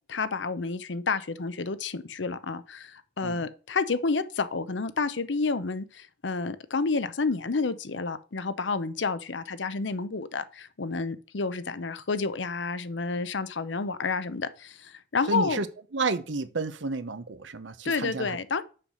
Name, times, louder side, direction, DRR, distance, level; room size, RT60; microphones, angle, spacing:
voice 1, 0.1-15.6 17.8-18.6, left 4 dB, 80° left, 0.7 m, -30 dB
voice 2, 15.3-15.7 15.9-18.4, right 3 dB, 85° right, 0.9 m, -31 dB
6.6 x 5.7 x 6.3 m
head